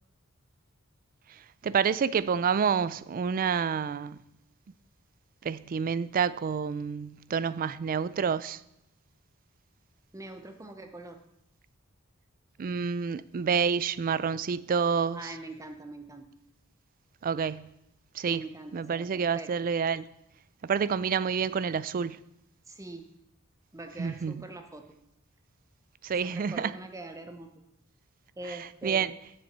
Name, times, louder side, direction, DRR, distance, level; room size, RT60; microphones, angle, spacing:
voice 1, 1.3-4.2 5.4-8.6 12.6-15.2 17.2-17.7 18.1-18.4 18.7-20.1 20.6-22.2 24.0-24.4 26.0-26.7 28.8-29.1, right 6 dB, 40° right, 0.3 m, -28 dB
voice 2, 10.1-11.2 15.1-16.3 18.3-19.5 22.7-23.1 23.7-25.0 26.2-27.5 28.4-29.1, right 2 dB, 15° right, 0.7 m, -43 dB
7.3 x 7.0 x 7.8 m
head